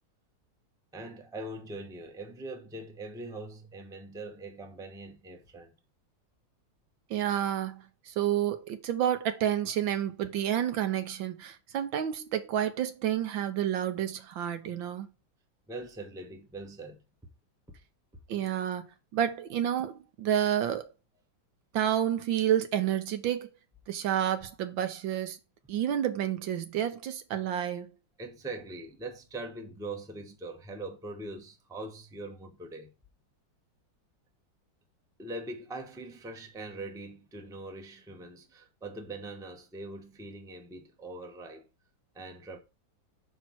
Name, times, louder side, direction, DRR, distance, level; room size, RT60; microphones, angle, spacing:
voice 1, 0.9-5.7 15.7-17.0 28.2-32.9 35.2-41.7 42.1-42.6, right 2 dB, 5° right, 0.7 m, -42 dB
voice 2, 7.1-15.1 18.3-18.9 19.1-20.9 21.7-23.5 23.9-25.4 25.7-27.9, right 10 dB, 80° right, 1.6 m, -30 dB
5.6 x 4.7 x 6.2 m
omnidirectional pair, 2.1 m